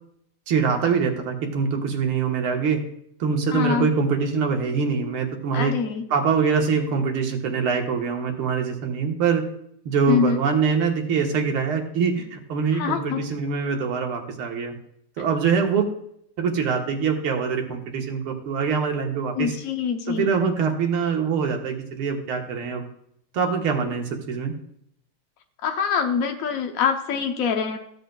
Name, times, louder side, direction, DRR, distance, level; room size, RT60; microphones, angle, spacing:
voice 1, 0.5-2.8 3.2-5.7 6.1-9.5 9.9-14.7 15.2-15.8 16.4-19.5 20.1-22.9 23.3-24.5, right 5 dB, 80° right, 3 dB, 2.1 m, -24 dB
voice 2, 3.5-3.9 5.5-6.0 10.1-10.4 12.7-13.2 19.3-20.3 25.6-27.8, left 6 dB, 75° left, 5 dB, 0.8 m, -24 dB
15.0 x 7.9 x 2.3 m, 0.74 s
omnidirectional pair, 2.4 m